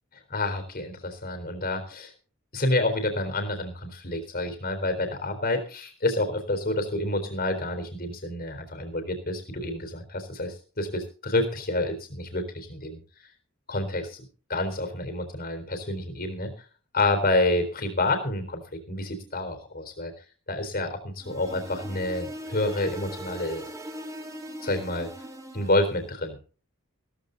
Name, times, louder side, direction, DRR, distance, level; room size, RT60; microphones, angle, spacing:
voice 1, 0.3-2.1 2.5-13.0 13.7-14.2 14.5-16.5 16.9-20.1 20.5-23.6 24.6-25.1 25.5-26.4, left 2 dB, 40° left, 7 dB, 3.8 m, -28 dB
sound 1, 21.2-26.0, equal, 15° right, 2.2 m, -40 dB
16.0 x 14.0 x 4.0 m, 0.38 s
head